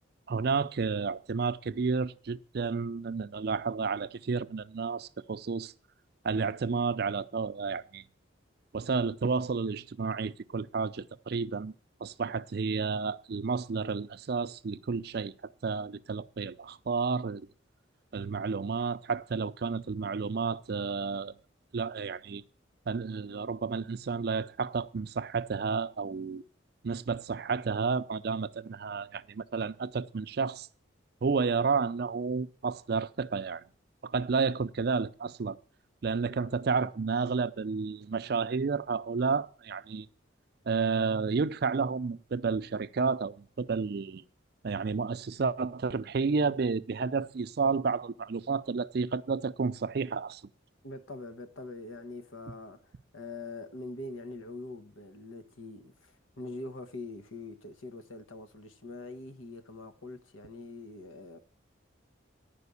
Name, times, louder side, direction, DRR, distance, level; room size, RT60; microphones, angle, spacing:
voice 1, 0.3-5.7 6.2-8.0 8.7-11.7 12.0-15.3 15.6-17.5 18.1-21.3 21.7-22.4 22.9-26.4 26.8-30.7 31.2-33.6 34.0-35.6 36.0-40.1 40.7-44.2 44.6-50.4, right 5 dB, 55° right, 0.4 m, -31 dB
voice 2, 36.2-36.5 50.8-61.4, left 2 dB, 85° left, 1.1 m, -43 dB
10.5 x 5.1 x 8.2 m
head